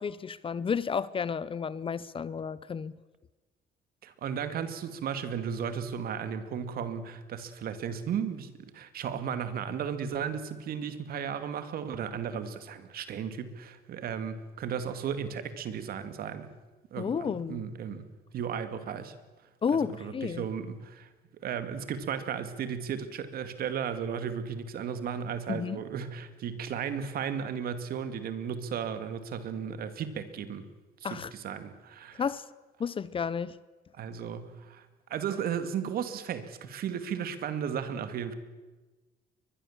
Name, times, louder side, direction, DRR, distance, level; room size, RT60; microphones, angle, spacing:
voice 1, 0.0-2.9 17.0-17.6 19.6-20.5 25.5-25.8 31.0-31.3 32.2-32.4 32.8-33.6, left 6 dB, 30° left, 0.8 m, -31 dB
voice 2, 4.0-16.5 16.9-18.1 18.3-19.1 19.8-21.1 21.4-30.7 31.0-32.2 33.9-38.3, right 7 dB, 60° right, 2.3 m, -35 dB
22.5 x 21.0 x 7.4 m
cardioid pair, 110°, 17 cm